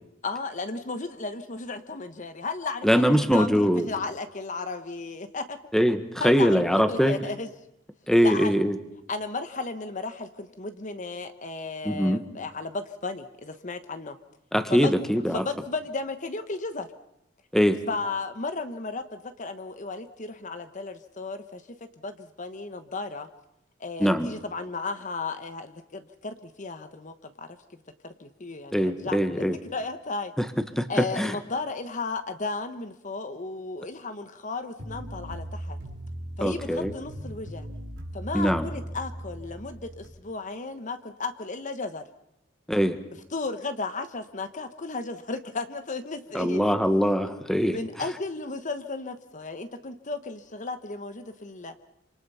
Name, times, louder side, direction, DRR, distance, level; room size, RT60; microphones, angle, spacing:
voice 1, 0.2-3.5 3.9-5.6 6.2-6.6 6.9-7.5 8.2-8.6 9.1-14.2 14.7-14.9 15.3-16.9 17.9-21.6 22.0-23.3 23.8-27.6 28.0-30.3 30.9-35.8 36.4-37.7 38.1-42.0 43.3-46.7 47.7-51.7, left 3 dB, 40° left, 10 dB, 1.1 m, -34 dB
voice 2, 2.8-3.9 5.7-7.2 8.1-8.8 11.8-12.2 14.5-15.4 17.5-17.8 24.0-24.3 28.7-29.6 30.4-30.5 30.8-31.4 36.4-36.9 38.3-38.7 42.7-43.0 46.3-47.8, equal, ahead, 9 dB, 1.4 m, -22 dB
sound 1, 34.8-40.1, right 1 dB, 70° right, 4.6 m, -38 dB
27.0 x 26.5 x 5.7 m, 0.81 s
head